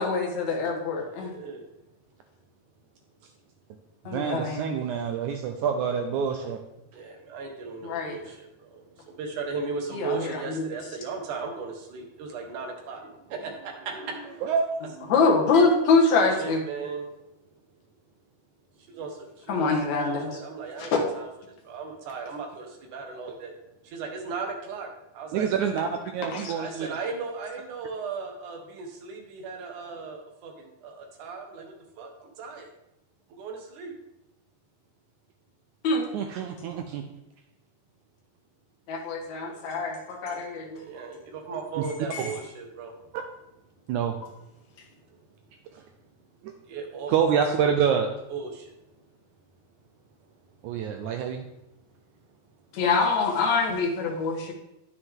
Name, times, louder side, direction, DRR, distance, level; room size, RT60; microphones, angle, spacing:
voice 1, 0.0-1.3 4.1-4.8 7.8-8.2 9.9-10.6 15.1-16.6 19.5-20.4 20.8-20.9 26.3-26.5 35.8-36.1 38.9-40.8 42.1-42.2 52.7-54.5, left 4 dB, 60° left, 0 dB, 2.5 m, -25 dB
voice 2, 0.9-1.6 6.9-14.4 15.0-15.1 16.1-17.2 18.9-23.5 23.8-24.9 25.1-25.5 26.4-30.5 30.8-32.7 33.4-33.9 39.3-39.7 40.2-42.9 46.7-47.7 48.3-48.7, right 4 dB, 65° right, 2 dB, 2.6 m, -37 dB
voice 3, 4.1-6.6 14.4-14.7 25.3-25.9 26.1-26.9 36.1-37.0 41.8-41.9 42.2-42.3 43.1-43.2 43.9-44.1 45.7-45.8 46.4-46.5 47.1-48.1 50.6-51.5, right 7 dB, 85° right, 5 dB, 1.7 m, -26 dB
9.6 x 7.4 x 3.7 m, 0.86 s
omnidirectional pair, 4.1 m